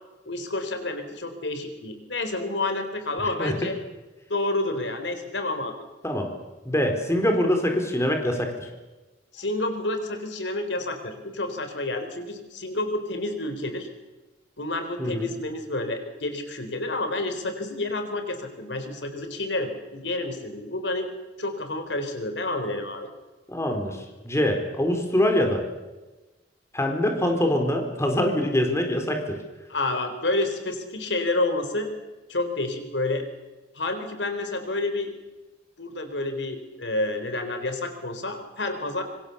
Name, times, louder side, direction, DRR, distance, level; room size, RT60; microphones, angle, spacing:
voice 1, 0.3-3.8 4.3-5.7 9.3-13.9 14.6-21.1 21.4-23.1 29.7-31.9 32.3-33.3 33.7-35.1 35.8-39.0, left 2 dB, 70° left, 8 dB, 4.1 m, -29 dB
voice 2, 6.6-8.7 15.0-15.3 23.5-24.0 24.2-25.6 26.7-29.4, left 1 dB, 15° left, 4 dB, 4.1 m, -24 dB
26.0 x 25.0 x 7.1 m, 1.1 s
head